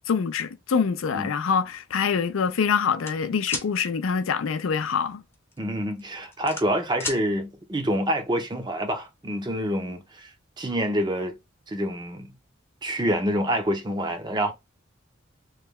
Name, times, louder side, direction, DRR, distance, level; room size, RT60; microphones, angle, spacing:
voice 1, 0.1-5.2, left 6 dB, 90° left, 0.4 m, -25 dB
sound 1, 3.0-3.7 5.3-5.6 6.0-7.2, left 3 dB, 10° left, 0.7 m, -32 dB
voice 2, 5.6-10.3 10.6-11.4 11.7-12.3 12.8-14.5, equal, 20° right, 0.6 m, -27 dB
3.1 x 2.2 x 3.5 m
head